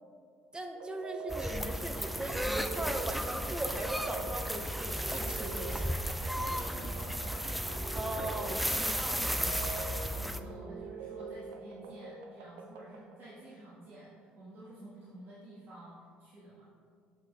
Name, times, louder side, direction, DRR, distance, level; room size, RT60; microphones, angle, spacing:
voice 1, 0.5-6.0 7.9-9.0, right 1 dB, 20° right, 5 dB, 0.7 m, -39 dB
sound 1, 0.7-13.3, right 4 dB, 85° right, 0.4 m, -45 dB
sound 2, 1.3-10.4, equal, ahead, 0.3 m, -34 dB
voice 2, 6.3-8.1 8.7-15.9 16.2-16.7, right 1 dB, 55° right, -9 dB, 1.6 m, -50 dB
7.9 x 4.1 x 3.3 m, 2.1 s
supercardioid pair, 70°, 4 cm